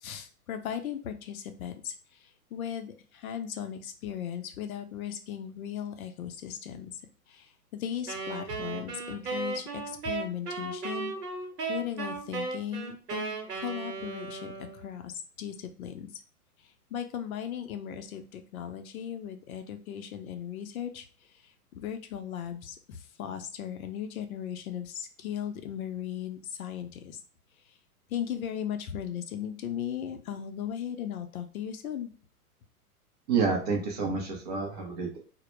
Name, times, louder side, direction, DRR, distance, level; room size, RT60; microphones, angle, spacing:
voice 1, 0.0-6.9 7.3-11.1 11.7-16.1 16.6-27.2 28.1-32.1, left 9 dB, 65° left, 7 dB, 0.6 m, -37 dB
Wind instrument woodwind instrument, 8.1-14.9, right 4 dB, 85° right, 0.9 m, -36 dB
voice 2, 33.3-35.2, right 5 dB, 30° right, 0 dB, 0.4 m, -29 dB
2.1 x 2.0 x 3.0 m, 0.39 s
hypercardioid pair, 120°, 46 cm